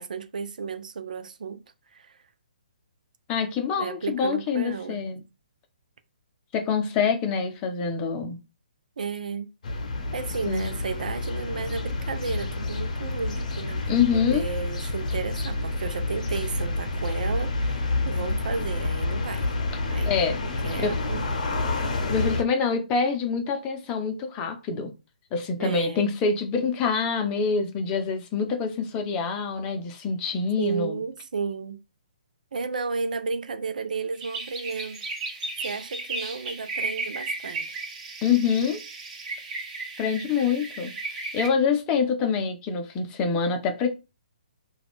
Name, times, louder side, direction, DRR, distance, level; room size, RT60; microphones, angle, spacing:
voice 1, 0.0-1.6 1.9-2.2 3.7-5.1 9.0-9.5 10.1-19.5 19.9-20.1 20.6-21.3 25.6-26.1 30.6-31.8 32.5-35.0 35.3-37.8, right 5 dB, 70° right, 0.4 m, -33 dB
voice 2, 3.3-5.2 6.5-8.4 10.5-10.7 13.9-14.4 20.1-20.4 20.8-21.0 22.1-24.9 25.3-31.0 38.2-38.8 40.0-43.9, left 5 dB, 25° left, 0.6 m, -26 dB
sound 1, 9.6-22.4, left 2 dB, 60° left, 0.7 m, -29 dB
sound 2, 34.1-41.5, right 3 dB, 35° right, 1.3 m, -35 dB
2.4 x 2.2 x 3.5 m
hypercardioid pair, 140°, 5 cm